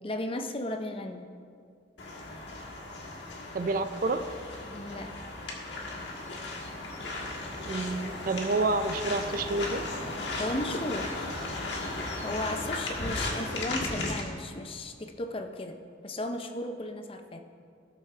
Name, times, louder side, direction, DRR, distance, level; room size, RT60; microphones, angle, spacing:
voice 1, 0.0-1.3 4.7-5.2 10.4-11.2 12.2-17.4, left 1 dB, 30° left, 6 dB, 0.6 m, -35 dB
sound 1, 2.0-14.2, left 2 dB, 70° left, 1.6 m, -36 dB
voice 2, 3.5-4.3 7.6-9.8, right 3 dB, 50° right, 10 dB, 0.4 m, -29 dB
17.0 x 6.4 x 3.3 m, 2.3 s
head